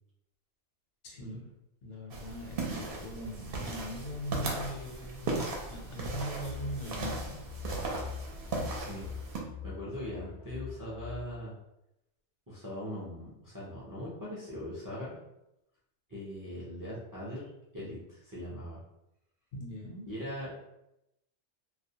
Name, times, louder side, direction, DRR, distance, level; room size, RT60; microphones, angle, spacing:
voice 1, 1.0-1.5 1.8-7.4 19.5-20.1, equal, 85° left, -2 dB, 1.0 m, -41 dB
sound 1, 2.1-9.4, right 3 dB, 65° right, 0.7 m, -37 dB
sound 2, 6.2-11.4, left 8 dB, 60° left, 0.6 m, -44 dB
voice 2, 8.7-9.1 9.6-11.5 12.5-15.2 16.1-18.8 20.0-20.5, equal, 30° right, -7 dB, 0.3 m, -40 dB
2.3 x 2.1 x 2.7 m, 0.86 s
omnidirectional pair, 1.2 m